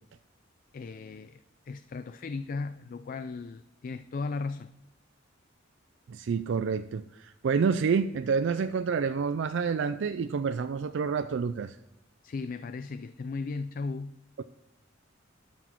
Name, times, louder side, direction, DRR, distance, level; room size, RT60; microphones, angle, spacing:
voice 1, 0.7-1.4 1.7-4.7 12.2-14.2, left 4 dB, 45° left, 12 dB, 0.3 m, -36 dB
voice 2, 6.1-11.8 14.4-14.5, right 5 dB, 65° right, 10 dB, 0.4 m, -28 dB
12.5 x 6.2 x 4.4 m, 0.94 s
head